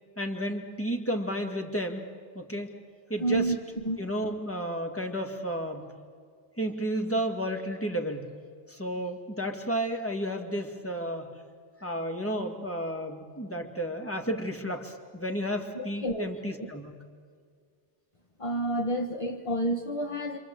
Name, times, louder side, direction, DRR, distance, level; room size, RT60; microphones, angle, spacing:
voice 1, 0.2-2.1 2.3-2.7 3.1-3.5 4.0-5.9 6.6-8.3 8.7-11.3 11.8-17.0, equal, 10° left, 3 dB, 2.2 m, -32 dB
voice 2, 3.2-3.6 3.8-4.0 15.7-16.7 18.4-20.4, right 1 dB, 30° left, 4 dB, 1.3 m, -30 dB
28.0 x 26.5 x 7.9 m, 2.2 s
omnidirectional pair, 1.1 m